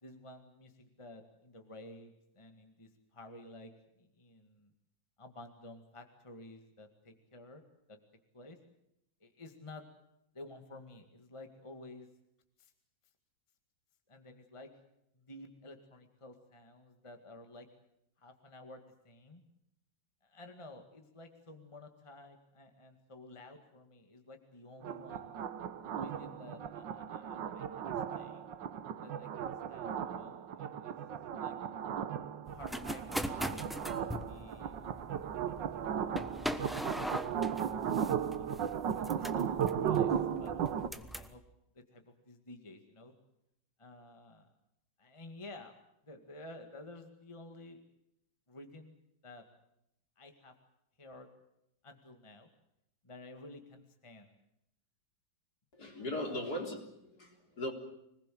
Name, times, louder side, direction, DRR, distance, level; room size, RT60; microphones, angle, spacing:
voice 1, 0.0-4.7 5.2-7.6 7.9-8.0 8.3-8.6 9.2-9.9 10.3-12.1 12.6-12.7 14.1-14.7 15.1-17.7 18.2-19.4 20.2-25.4 25.9-28.5 29.0-31.0 31.4-31.6 32.5-34.7 35.9-37.2 37.4-38.5 38.9-40.1 40.4-40.5 40.9-41.4 41.7-43.1 43.8-44.5 45.0-45.7 46.0-47.8 48.5-49.0 49.2-49.5 50.2-50.5 51.0-51.3 51.8-52.5 53.0-54.4 56.2-56.6, left 2 dB, 15° left, 5 dB, 2.0 m, -52 dB
sound 1, 24.8-40.9, right 8 dB, 70° right, 1.8 m, -36 dB
sound 2, 32.5-41.4, equal, ahead, 0.6 m, -41 dB
voice 2, 55.7-57.7, left 1 dB, 50° left, 2 dB, 4.3 m, -39 dB
26.0 x 20.0 x 7.7 m, 0.81 s
omnidirectional pair, 2.1 m